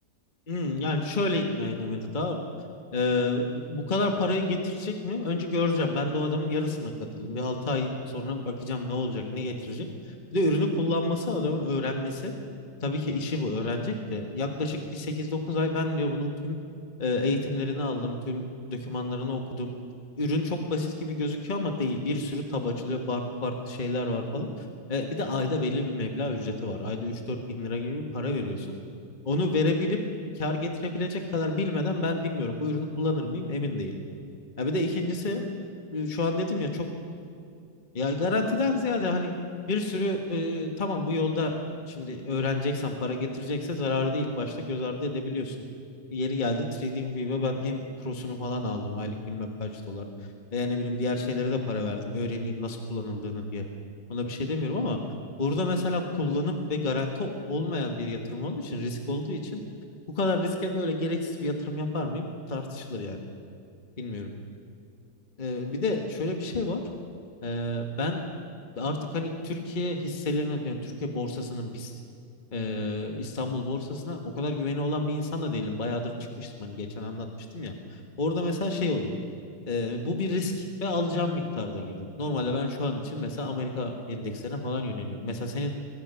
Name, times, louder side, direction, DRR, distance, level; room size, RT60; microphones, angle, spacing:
voice 1, 0.5-2.4 2.9-12.3 12.8-16.6 17.0-19.7 20.2-28.7 29.2-30.0 30.3-34.0 34.6-35.4 35.9-36.7 37.9-39.3 39.7-41.5 41.9-45.6 46.1-50.1 50.5-53.6 54.1-55.0 55.4-59.6 60.1-63.2 64.0-64.3 65.4-66.8 67.4-68.2 68.8-72.0 72.5-77.3 77.5-79.2 79.7-85.7, left 2 dB, 30° left, 3 dB, 1.4 m, -29 dB
22.5 x 20.5 x 5.7 m, 2.4 s
omnidirectional pair, 1.8 m